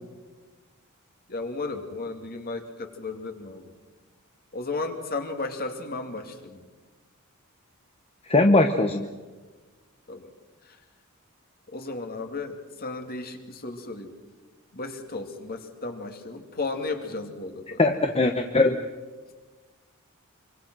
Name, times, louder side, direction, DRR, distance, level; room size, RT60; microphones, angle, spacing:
voice 1, 1.3-3.7 4.5-6.7 10.1-10.3 10.6-10.8 11.7-14.1 14.7-17.8, left 3 dB, 45° left, 5 dB, 2.5 m, -34 dB
voice 2, 8.3-9.1 17.8-18.8, left 2 dB, 30° left, 5 dB, 1.0 m, -20 dB
25.0 x 25.0 x 6.2 m, 1.3 s
head